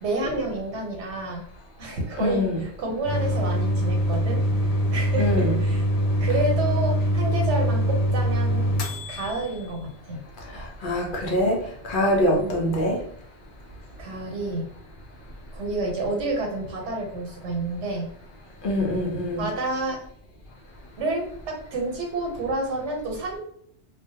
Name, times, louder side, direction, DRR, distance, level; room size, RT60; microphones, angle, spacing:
voice 1, 0.0-1.4 1.8-4.4 4.9-5.9 6.2-10.2 12.3-12.7 14.0-14.6 15.5-18.1 19.4-20.0 21.0-23.4, right 2 dB, 90° right, 1 dB, 1.0 m, -29 dB
voice 2, 2.2-2.5 5.2-5.6 10.5-11.6 11.8-13.0 18.6-19.4, left 1 dB, 60° left, 0 dB, 0.6 m, -24 dB
sound 1, 3.1-9.6, equal, 90° left, 0.9 m, -23 dB
2.3 x 2.1 x 2.6 m, 0.69 s
omnidirectional pair, 1.2 m